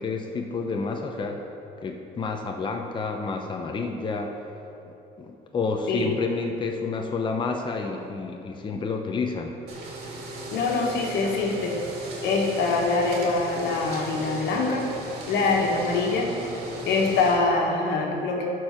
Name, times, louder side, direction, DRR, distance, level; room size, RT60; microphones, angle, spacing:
voice 1, 0.0-1.4 1.8-4.3 5.2-9.6, left 4 dB, 30° left, 3 dB, 0.7 m, -29 dB
sound 1, 9.7-17.3, right 2 dB, 70° right, 2.4 m, -37 dB
voice 2, 10.5-11.8 12.2-14.9 15.3-16.4 16.8-18.6, left 3 dB, 85° left, 0 dB, 1.5 m, -24 dB
12.5 x 4.7 x 5.8 m, 2.9 s
cardioid pair, 110°, 17 cm